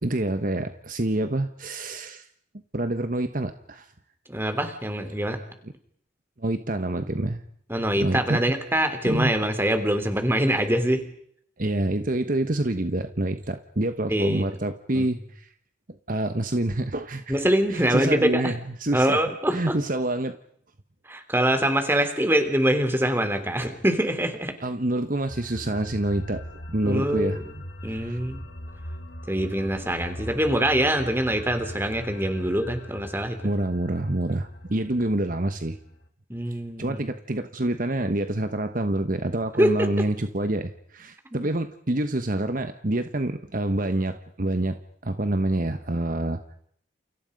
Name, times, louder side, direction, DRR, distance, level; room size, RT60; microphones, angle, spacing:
voice 1, 0.0-2.3 2.7-3.9 6.4-7.4 8.0-8.4 9.1-9.3 11.6-15.5 16.1-17.3 17.7-19.2 19.5-20.4 22.0-22.1 24.6-27.4 27.9-28.2 33.4-35.8 36.8-46.6, right 1 dB, 45° right, 9 dB, 1.2 m, -27 dB
voice 2, 4.3-5.4 7.7-11.0 14.1-14.5 14.9-15.1 17.3-18.5 18.9-19.8 21.0-24.5 26.8-28.4 29.3-33.4 36.3-37.0 39.6-39.9 41.3-41.5, right 1 dB, 10° right, 7 dB, 3.4 m, -24 dB
sound 1, 25.3-36.1, equal, 65° left, 2.8 m, -40 dB
30.0 x 29.0 x 5.3 m, 0.67 s
head